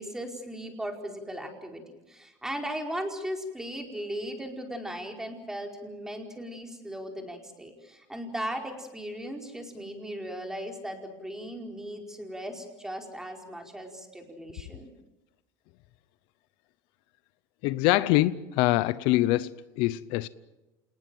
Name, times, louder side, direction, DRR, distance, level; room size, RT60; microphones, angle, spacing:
voice 1, 0.0-1.8 2.1-14.9, equal, 5° right, 4.7 m, -37 dB
voice 2, 17.6-19.5 19.8-20.3, left 17 dB, 70° left, 0.7 m, -24 dB
28.0 x 19.5 x 7.7 m
supercardioid pair, 120°, 9 cm